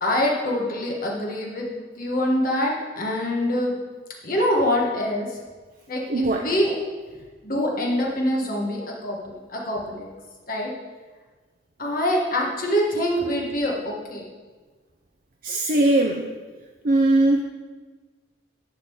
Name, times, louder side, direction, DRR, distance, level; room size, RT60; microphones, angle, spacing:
voice 1, 0.0-3.7 4.2-5.3 5.9-6.8 7.4-10.1 10.5-10.7 11.8-14.2, left 1 dB, 55° left, -2 dB, 1.5 m, -25 dB
voice 2, 6.1-6.4 15.4-16.3 16.8-17.4, right 2 dB, 55° right, 1 dB, 0.6 m, -20 dB
10.5 x 3.7 x 7.0 m, 1.4 s
head